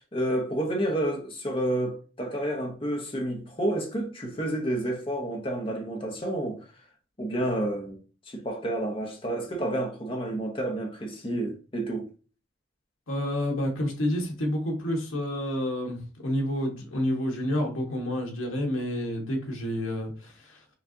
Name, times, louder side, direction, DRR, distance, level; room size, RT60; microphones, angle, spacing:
voice 1, 0.0-6.6 7.2-8.0 8.3-12.1, right 1 dB, 25° left, 0.9 m, -30 dB
voice 2, 13.1-20.6, left 1 dB, 85° left, 1.3 m, -29 dB
5.7 x 2.5 x 2.7 m
head